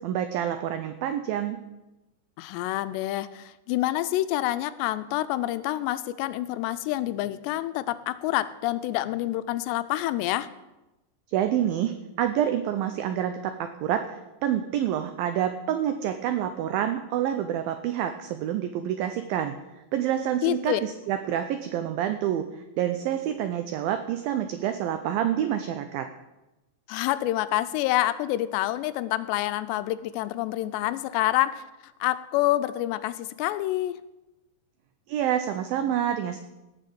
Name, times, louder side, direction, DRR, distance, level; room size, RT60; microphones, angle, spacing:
voice 1, 0.0-1.6 11.3-14.1 14.4-19.5 19.9-22.5 22.8-26.1 35.1-36.4, right 10 dB, 90° right, 8 dB, 2.0 m, -27 dB
voice 2, 2.4-10.5 20.4-20.8 26.9-34.0, left 15 dB, 85° left, 13 dB, 2.7 m, -27 dB
17.5 x 5.9 x 6.9 m, 0.99 s
omnidirectional pair, 5.0 m